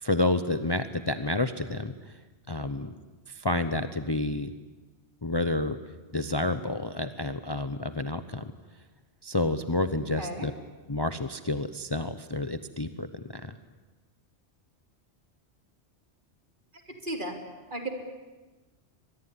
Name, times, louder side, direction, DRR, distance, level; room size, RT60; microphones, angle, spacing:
voice 1, 0.0-2.2 2.5-2.9 3.3-4.5 5.2-5.8 6.1-8.5 9.2-10.5 10.9-13.6, left 2 dB, 25° left, 10 dB, 0.8 m, -29 dB
voice 2, 10.2-10.5 17.0-17.4 17.7-17.9, right 1 dB, 45° right, 3 dB, 3.6 m, -34 dB
24.5 x 21.0 x 9.8 m, 1.2 s
omnidirectional pair, 1.2 m